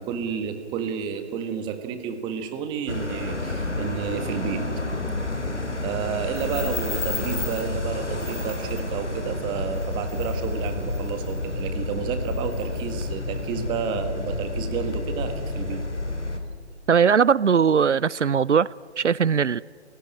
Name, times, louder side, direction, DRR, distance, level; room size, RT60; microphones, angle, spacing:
voice 1, 0.0-4.7 5.8-15.8, right 7 dB, 15° right, 1.6 m, -31 dB
sound 1, 2.9-16.4, left 2 dB, 80° left, 3.5 m, -29 dB
voice 2, 16.9-18.7 19.0-19.6, right 7 dB, 85° right, 0.5 m, -19 dB
30.0 x 18.0 x 9.0 m
figure-of-eight pair, 140°, 35 cm